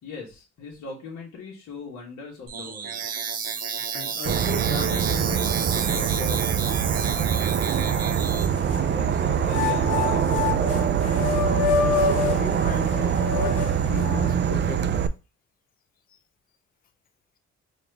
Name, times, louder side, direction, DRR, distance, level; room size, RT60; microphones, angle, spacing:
voice 1, 0.0-3.0 8.8-10.2, left 3 dB, 65° left, 1.3 m, -40 dB
sound 1, 2.5-8.5, right 6 dB, 55° right, 0.8 m, -31 dB
voice 2, 3.9-6.5 11.6-14.8, left 5 dB, 30° left, 0.5 m, -36 dB
Insect / Frog, 4.3-15.1, right 8 dB, 35° right, 0.4 m, -24 dB
sound 2, 4.4-4.5 5.0-5.9 6.5-6.6 7.7-8.9 9.4-14.4, left 8 dB, 90° left, 0.6 m, -28 dB
4.3 x 2.5 x 3.2 m
cardioid pair, 90°, 30 cm